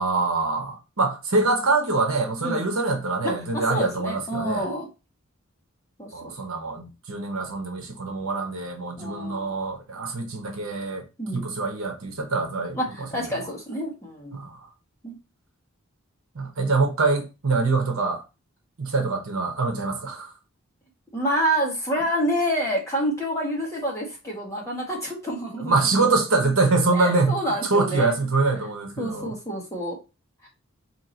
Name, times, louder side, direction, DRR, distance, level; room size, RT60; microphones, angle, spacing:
voice 1, 0.0-4.7 6.1-11.1 11.3-13.2 14.3-14.7 16.3-18.2 18.8-20.3 25.6-29.3, right 3 dB, 70° right, 1.0 m, -24 dB
voice 2, 3.2-4.9 6.0-6.1 9.0-9.5 11.2-11.4 12.7-12.9 13.1-14.4 15.0-15.1 21.1-25.7 26.9-28.1 29.0-30.0 30.4-30.5, equal, 15° left, 1.5 m, -28 dB
4.6 x 2.9 x 2.8 m
head